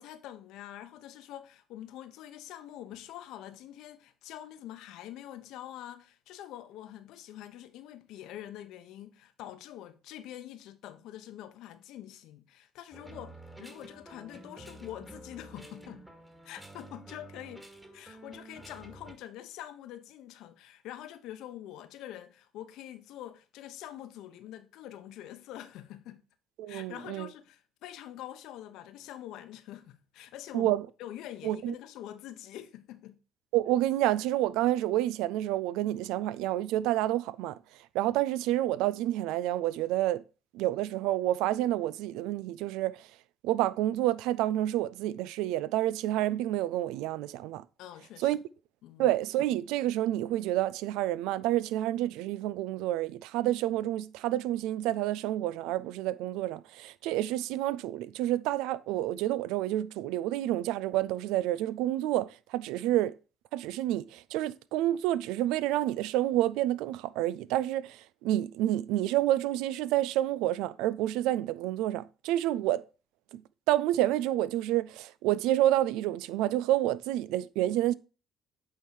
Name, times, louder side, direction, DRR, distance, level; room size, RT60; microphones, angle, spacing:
voice 1, 0.0-16.0 16.4-17.7 17.9-26.2 26.7-30.7 31.0-33.2 47.8-48.3 48.8-49.1, left 12 dB, 75° left, 0.8 m, -45 dB
sound 1, 12.9-19.1, right 1 dB, 10° right, 2.0 m, -49 dB
voice 2, 26.6-27.3 30.5-30.9 31.4-31.7 33.5-37.6 37.9-40.2 40.5-43.1 43.4-47.6 48.2-48.4 49.0-63.2 63.5-72.8 73.3-73.4 73.7-77.9, right 14 dB, 80° right, 0.3 m, -29 dB
8.3 x 3.8 x 4.8 m
hypercardioid pair, 60°, 0 cm